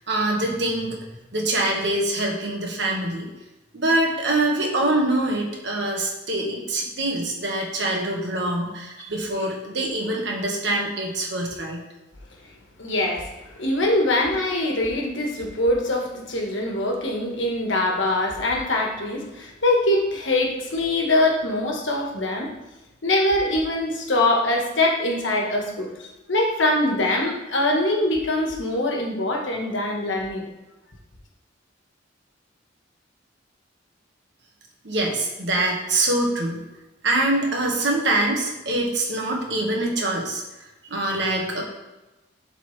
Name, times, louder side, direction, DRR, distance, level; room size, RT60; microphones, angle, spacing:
voice 1, 0.1-1.0 1.3-3.3 3.7-11.8 34.8-36.6 37.0-40.4 40.9-41.6, right 2 dB, 60° right, 0 dB, 1.5 m, -24 dB
voice 2, 12.8-13.2 13.6-22.5 23.0-25.9 26.3-30.4, left 1 dB, 70° left, 1 dB, 1.3 m, -23 dB
11.5 x 4.0 x 3.2 m, 1.0 s
head